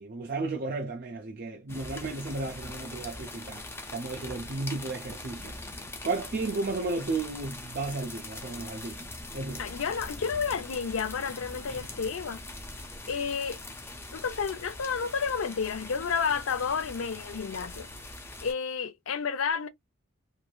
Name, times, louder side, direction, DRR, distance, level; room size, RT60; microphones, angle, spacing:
voice 1, 0.0-3.7 3.9-5.6 6.0-9.0 9.3-9.6, right 3 dB, 50° right, 0.4 m, -33 dB
sound 1, 1.7-18.5, left 2 dB, 10° left, 0.5 m, -42 dB
voice 2, 9.6-12.4 13.1-13.6 14.1-17.9 18.4-19.7, left 6 dB, 80° left, 0.5 m, -31 dB
3.1 x 2.5 x 2.3 m
head